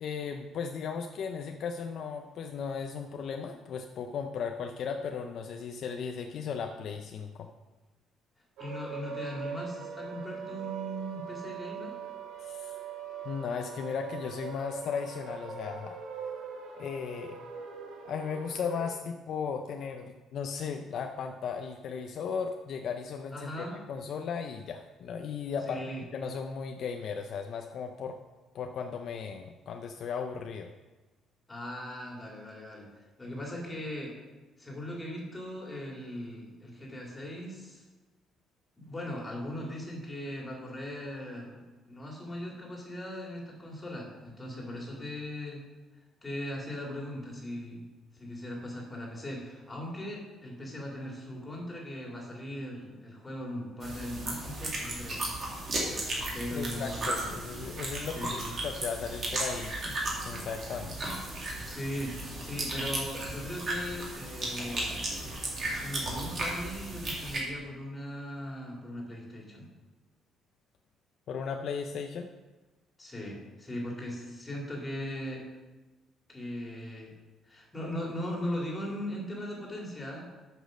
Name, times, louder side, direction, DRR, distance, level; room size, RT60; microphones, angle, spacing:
voice 1, 0.0-7.5 12.4-12.7 13.2-16.0 16.8-17.4 18.0-23.5 23.9-25.8 26.1-28.2 28.5-30.7 56.5-60.0 60.3-61.0 71.3-72.3, left 6 dB, 55° left, 5 dB, 0.5 m, -36 dB
voice 2, 8.6-12.0 23.3-23.8 25.6-26.0 31.5-34.2 34.6-37.8 38.8-45.6 46.2-47.9 48.1-55.2 56.3-57.3 58.0-58.5 61.7-65.0 65.7-69.7 73.0-75.5 76.3-77.1 77.4-80.3, left 1 dB, 15° left, -2 dB, 2.4 m, -39 dB
sound 1, 8.6-19.0, right 6 dB, 75° right, 1.3 m, -41 dB
sound 2, 53.8-67.4, right 2 dB, 40° right, 2.4 m, -35 dB
8.1 x 6.2 x 6.3 m, 1.2 s
cardioid pair, 155°, 0 cm